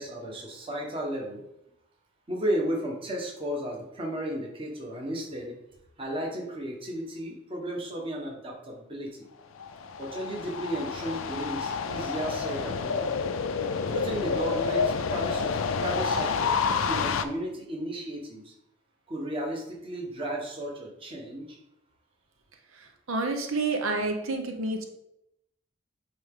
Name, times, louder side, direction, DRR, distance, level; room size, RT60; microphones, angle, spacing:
voice 1, 0.0-1.4 2.3-5.5 6.0-9.2 10.0-13.1 13.9-18.5 19.1-21.6, right 1 dB, 25° right, -1 dB, 1.3 m, -34 dB
sound 1, 9.6-17.2, left 5 dB, 85° left, 0.5 m, -29 dB
voice 2, 22.7-24.8, right 3 dB, 90° right, 4 dB, 0.8 m, -29 dB
8.7 x 3.4 x 3.7 m, 0.82 s
head